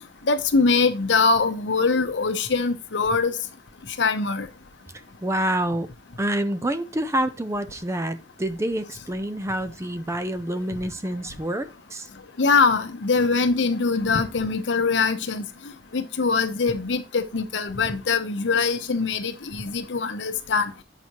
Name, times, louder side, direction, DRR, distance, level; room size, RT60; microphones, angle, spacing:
voice 1, 0.3-3.3 4.0-4.5 12.4-15.5 15.9-20.7, left 4 dB, 85° left, 0.8 m, -22 dB
voice 2, 5.2-5.9 6.2-12.1, right 1 dB, 15° right, 0.5 m, -27 dB
7.9 x 5.7 x 2.9 m
head